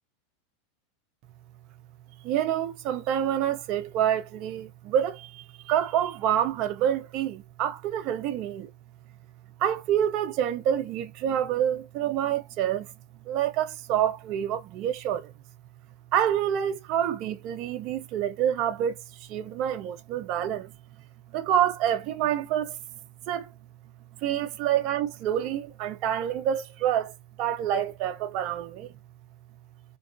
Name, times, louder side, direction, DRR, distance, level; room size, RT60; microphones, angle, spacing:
voice 1, 2.2-8.7 9.6-12.9 13.3-15.3 16.1-20.7 21.3-22.8 23.3-23.5 24.2-28.9, right 10 dB, 50° right, 0.4 m, -27 dB
2.3 x 2.2 x 2.4 m
hypercardioid pair, 115°, 0 cm